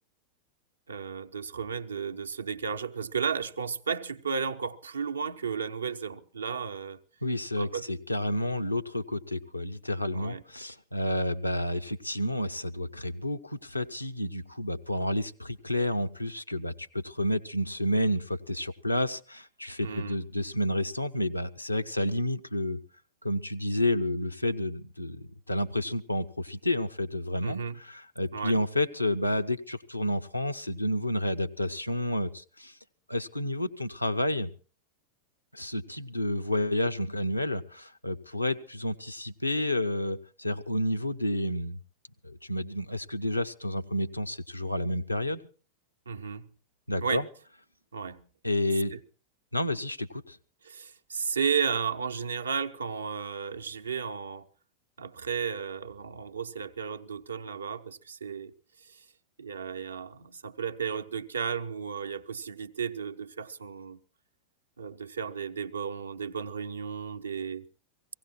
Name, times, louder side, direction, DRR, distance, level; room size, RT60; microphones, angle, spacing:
voice 1, 0.9-7.0 7.6-7.9 10.1-10.4 19.8-20.2 27.4-27.8 28.3-28.6 46.1-46.5 47.0-47.2 47.9-48.2 48.9-49.0 50.6-54.5 55.0-58.5 58.8-59.0 59.4-64.0 64.8-67.7, right 6 dB, 75° right, 0.7 m, -34 dB
voice 2, 7.2-22.8 23.2-32.7 33.1-34.5 35.5-41.8 42.2-45.4 46.9-47.3 48.4-48.9 49.5-50.4, left 1 dB, 85° left, 0.7 m, -30 dB
17.0 x 16.5 x 4.3 m
figure-of-eight pair, 90°, 0 cm